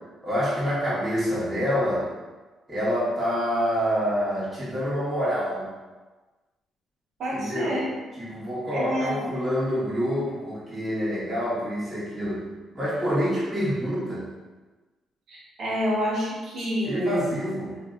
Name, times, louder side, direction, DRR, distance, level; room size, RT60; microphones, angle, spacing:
voice 1, 0.2-2.1 2.7-5.7 7.3-7.8 8.2-12.5 12.7-14.3 16.8-17.8, equal, 20° right, -11 dB, 1.3 m, -27 dB
voice 2, 7.2-7.9 8.7-9.3 15.3-17.4, equal, 65° right, -6 dB, 1.0 m, -28 dB
2.7 x 2.7 x 2.4 m, 1.2 s
cardioid pair, 90°, 0 cm